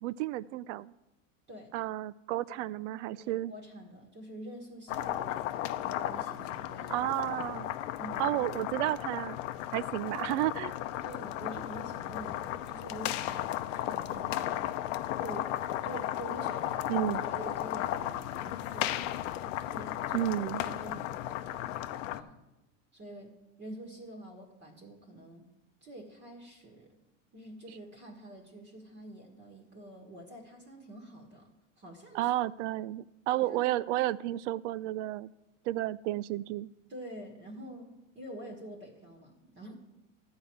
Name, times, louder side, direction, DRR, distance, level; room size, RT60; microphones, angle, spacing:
voice 1, 0.0-0.9 1.7-3.5 6.9-7.8 8.2-9.4 9.7-10.7 16.9-17.2 20.1-20.6 32.1-35.3 35.6-36.7, right 15 dB, 65° right, 20 dB, 0.5 m, -32 dB
voice 2, 3.1-7.1 8.0-8.3 9.9-10.1 11.0-14.7 15.2-20.2 20.6-21.7 22.1-22.4 22.9-25.5 25.8-27.0 27.3-32.3 33.5-33.7 36.9-39.7, right 1 dB, 30° right, 1 dB, 1.6 m, -47 dB
sound 1, 4.9-22.2, left 13 dB, 75° left, 0.8 m, -35 dB
13.0 x 4.7 x 8.7 m, 0.97 s
supercardioid pair, 145°, 39 cm